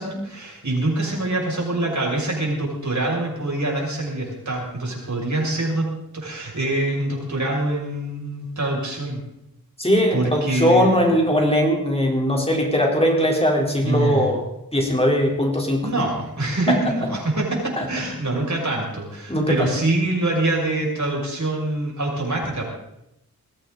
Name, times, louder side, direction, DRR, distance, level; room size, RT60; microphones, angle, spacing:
voice 1, 0.0-5.9 6.1-9.2 10.1-11.1 13.8-14.3 15.8-22.7, right 2 dB, 55° right, -2 dB, 6.7 m, -25 dB
voice 2, 9.8-14.4 14.7-15.9 17.8-17.9 19.3-19.7, equal, 15° left, 0 dB, 4.0 m, -20 dB
21.0 x 15.5 x 4.1 m, 0.83 s
wide cardioid pair, 90°, 35 cm